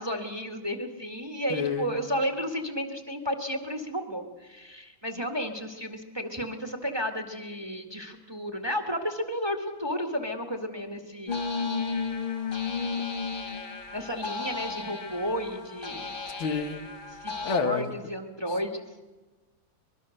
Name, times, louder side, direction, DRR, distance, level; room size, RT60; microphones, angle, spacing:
voice 1, 0.0-11.4 13.9-16.2 17.1-18.9, equal, 15° right, 4 dB, 1.8 m, -32 dB
voice 2, 1.5-1.9 16.4-16.8 17.4-17.9, left 6 dB, 75° left, 7 dB, 2.2 m, -29 dB
sound 1, 11.3-17.6, left 5 dB, 35° left, 1.0 m, -33 dB
24.5 x 22.0 x 6.6 m, 1.2 s
omnidirectional pair, 2.2 m